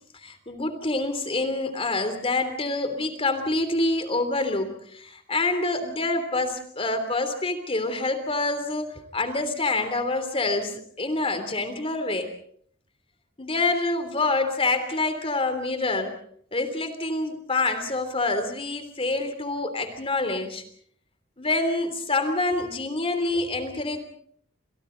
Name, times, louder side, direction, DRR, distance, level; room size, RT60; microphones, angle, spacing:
voice 1, 0.2-12.3 13.4-16.1 16.5-20.6 21.4-24.0, left 2 dB, 30° left, 9 dB, 3.3 m, -26 dB
29.5 x 27.5 x 4.0 m, 0.62 s
head